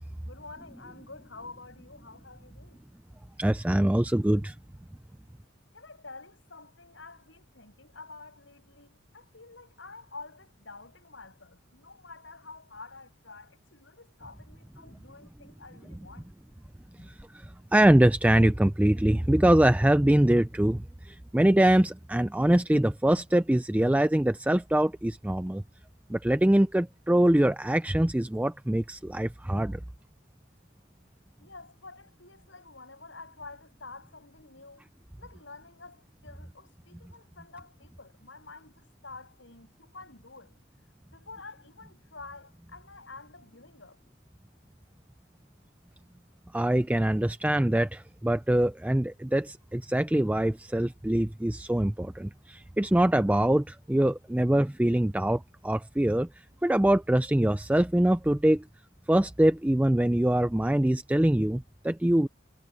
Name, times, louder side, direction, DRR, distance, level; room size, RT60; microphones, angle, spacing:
voice 1, 0.2-2.8 5.7-16.3 31.4-34.8 35.2-40.6 41.1-44.0, left 3 dB, 65° left, 7.8 m, -48 dB
voice 2, 3.4-4.5 17.0-17.5 17.7-25.6 26.1-29.8 46.5-56.3 56.6-58.6 59.1-62.3, right 1 dB, 5° right, 0.4 m, -24 dB
head